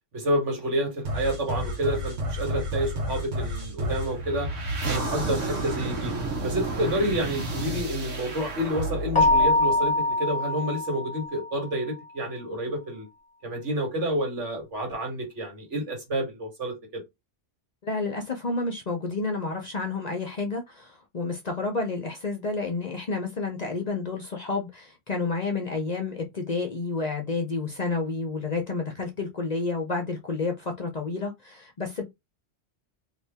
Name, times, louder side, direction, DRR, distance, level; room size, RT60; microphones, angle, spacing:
voice 1, 0.1-4.5 4.9-6.1 6.4-13.1 13.4-17.0, right 1 dB, 70° right, 1.7 m, -29 dB
sound 1, 1.0-10.4, right 1 dB, 90° right, 1.2 m, -31 dB
Keyboard (musical), 9.1-11.6, left 2 dB, 25° left, 1.0 m, -23 dB
voice 2, 17.8-32.0, left 3 dB, 45° left, 0.6 m, -30 dB
2.7 x 2.7 x 3.4 m
omnidirectional pair, 1.2 m